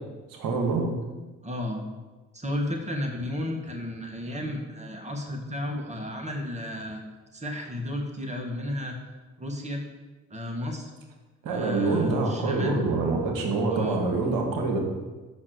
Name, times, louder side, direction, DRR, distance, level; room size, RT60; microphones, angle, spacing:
voice 1, 0.3-0.8 11.4-14.8, right 3 dB, 60° right, 1 dB, 2.0 m, -26 dB
voice 2, 1.4-1.8 2.3-7.0 7.3-9.0 9.4-9.8 10.3-10.9 11.5-12.8 13.7-14.0, left 1 dB, 20° right, 2 dB, 1.8 m, -33 dB
7.5 x 5.9 x 6.5 m, 1.2 s
hypercardioid pair, 50°, 38 cm